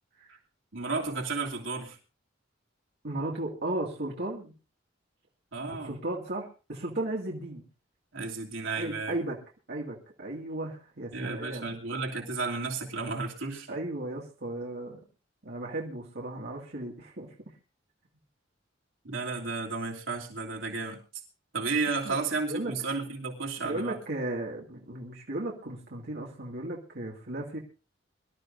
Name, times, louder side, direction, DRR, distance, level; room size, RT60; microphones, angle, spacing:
voice 1, 0.7-2.0 5.5-6.0 8.1-9.2 11.1-13.7 19.0-21.0 21.5-24.0, right 4 dB, 80° right, 0 dB, 3.0 m, -33 dB
voice 2, 3.0-4.5 5.7-7.7 8.8-9.4 9.7-11.7 13.7-15.0 15.4-17.3 22.0-22.2 22.5-22.7 23.6-27.6, right 1 dB, 60° right, -2 dB, 2.3 m, -35 dB
24.0 x 12.5 x 2.7 m, 0.32 s
head